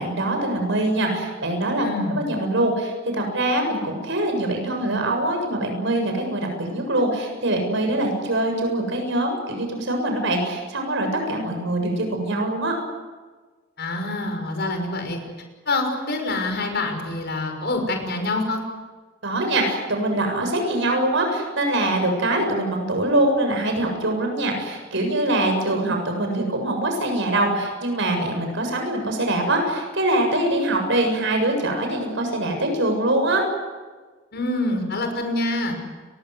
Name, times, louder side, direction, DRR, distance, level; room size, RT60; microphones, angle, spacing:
voice 1, 0.0-12.7 19.2-33.4, right 1 dB, 65° right, 3 dB, 7.5 m, -23 dB
voice 2, 1.8-2.2 13.8-15.2 15.7-18.6 34.3-35.8, left 2 dB, 55° left, 5 dB, 6.1 m, -26 dB
30.0 x 22.0 x 7.9 m, 1.3 s
head